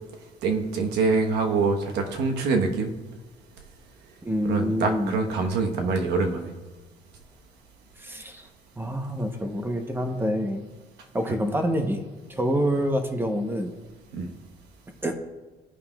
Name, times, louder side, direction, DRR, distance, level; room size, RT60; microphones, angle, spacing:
voice 1, 0.4-2.9 4.5-6.5 14.1-14.3, right 4 dB, 80° right, 4 dB, 1.1 m, -25 dB
voice 2, 4.2-5.2 8.0-8.5 8.8-10.7 11.1-13.7 15.0-15.1, equal, 15° right, 6 dB, 0.8 m, -27 dB
14.5 x 5.5 x 2.3 m, 1.3 s
cardioid pair, 110°, 17 cm